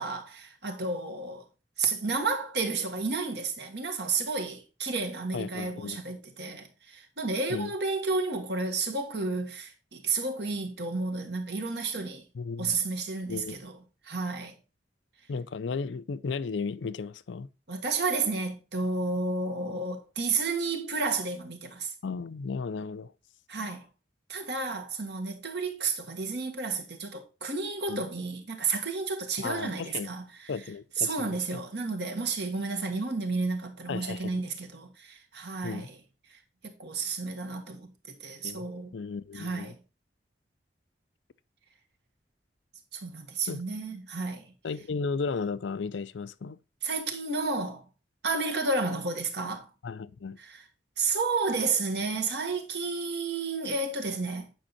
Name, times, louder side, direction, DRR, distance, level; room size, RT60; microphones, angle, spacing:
voice 1, 0.0-1.5 1.8-12.2 12.6-13.8 14.0-14.6 17.7-21.9 23.5-23.9 24.3-30.5 31.0-36.0 36.3-38.9 39.3-39.8 42.9-44.5 46.8-47.8 48.2-49.7 50.4-50.6 51.0-54.6, right 3 dB, 65° right, 1.7 m, -31 dB
voice 2, 5.3-6.0 7.5-7.7 12.3-12.8 13.3-13.6 15.3-17.5 22.0-23.1 27.9-28.0 29.4-30.1 30.5-31.6 33.9-34.4 35.6-35.9 38.4-38.7 38.9-39.7 43.5-43.6 44.6-46.6 49.8-50.4, left 4 dB, 80° left, 0.5 m, -34 dB
9.0 x 5.4 x 4.2 m
head